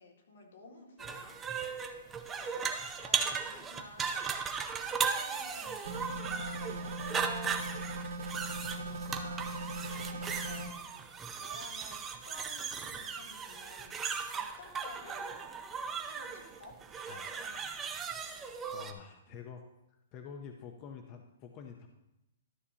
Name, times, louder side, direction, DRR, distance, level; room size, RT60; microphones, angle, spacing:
voice 1, 0.0-4.4 4.9-7.7 8.7-14.0 14.3-15.4 16.1-17.9, left 2 dB, 75° left, 0 dB, 2.3 m, -53 dB
sound 1, 1.0-18.9, right 6 dB, 15° right, 0.6 m, -37 dB
sound 2, 5.8-10.7, right 2 dB, 90° right, 2.0 m, -39 dB
voice 2, 18.0-19.6 20.1-21.9, left 6 dB, 30° left, 4 dB, 0.7 m, -48 dB
12.5 x 6.7 x 2.8 m, 0.87 s
hypercardioid pair, 160°, 0 cm